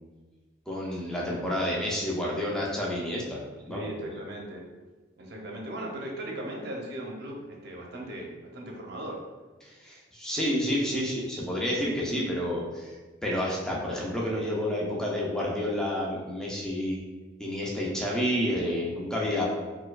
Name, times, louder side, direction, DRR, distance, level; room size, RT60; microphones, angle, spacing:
voice 1, 0.7-3.9 9.6-13.0 13.2-17.0 17.4-19.5, left 1 dB, 5° left, -4 dB, 0.5 m, -29 dB
voice 2, 3.7-4.6 5.2-9.2, right 1 dB, 60° right, -1 dB, 0.7 m, -38 dB
4.4 x 2.3 x 2.3 m, 1.3 s
head